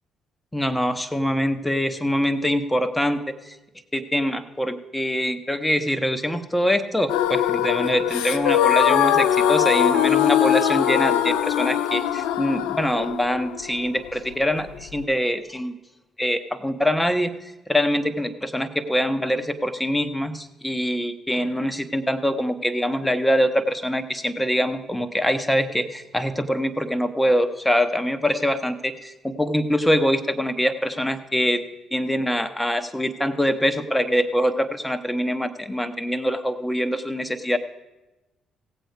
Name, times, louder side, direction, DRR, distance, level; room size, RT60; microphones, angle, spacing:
voice 1, 0.5-3.2 3.5-3.6 3.9-15.7 16.2-17.3 17.7-31.6 31.9-37.6, equal, 10° left, 9 dB, 1.0 m, -24 dB
sound 1, 7.1-15.0, left 10 dB, 70° left, 0.4 m, -21 dB
17.0 x 7.8 x 4.8 m, 1.1 s
figure-of-eight pair, 45°, 0 cm